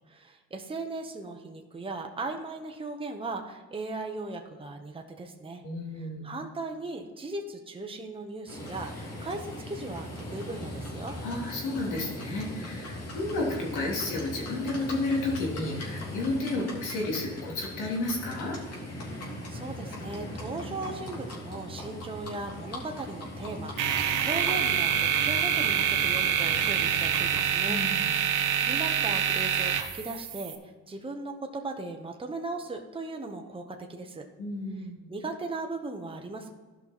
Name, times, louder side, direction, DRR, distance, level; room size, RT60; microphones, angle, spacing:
voice 1, 0.1-5.6 5.9-11.1 19.0-19.2 19.5-27.8 28.1-34.3 35.1-36.5, right 3 dB, 20° right, 3 dB, 1.1 m, -38 dB
voice 2, 5.6-6.2 11.2-18.6 27.7-28.1 34.4-35.1, left 2 dB, 85° left, -2 dB, 3.3 m, -32 dB
Livestock farm animals working animals, 8.5-27.5, left 1 dB, 55° left, 2.9 m, -39 dB
sound 1, 23.8-30.6, right 8 dB, 90° right, 1.0 m, -26 dB
13.0 x 5.8 x 4.4 m, 1.3 s
cardioid pair, 90°, 30 cm